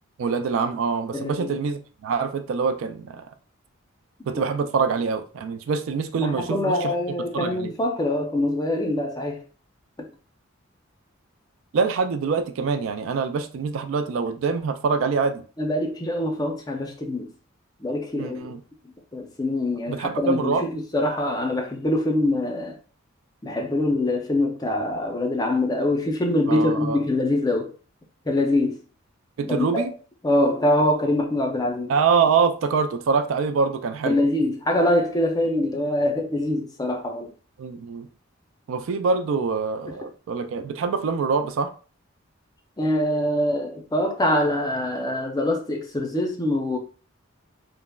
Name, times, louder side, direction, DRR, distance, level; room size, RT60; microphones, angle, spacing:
voice 1, 0.2-3.3 4.3-6.9 7.3-7.7 11.7-15.4 18.2-18.6 19.9-20.6 26.5-27.0 29.4-29.9 31.9-34.2 37.6-38.1 38.7-41.7, right 5 dB, 70° right, 0.3 m, -25 dB
voice 2, 1.1-1.6 4.3-4.4 6.2-9.4 15.6-17.3 17.8-18.5 19.1-22.8 23.4-27.7 28.3-28.8 29.4-29.8 30.2-31.9 34.0-37.3 42.8-46.8, left 1 dB, 20° left, 0.4 m, -24 dB
3.3 x 2.0 x 2.2 m
head